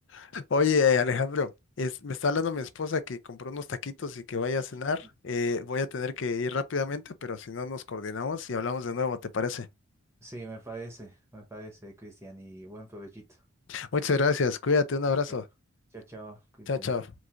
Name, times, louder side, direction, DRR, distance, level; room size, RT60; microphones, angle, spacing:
voice 1, 0.1-1.5 1.8-9.7 13.7-15.4 16.7-17.1, left 4 dB, 60° left, 0.5 m, -28 dB
voice 2, 10.2-13.4 15.3-15.4 15.9-16.9, right 2 dB, 15° right, 0.9 m, -44 dB
4.6 x 2.6 x 3.7 m
head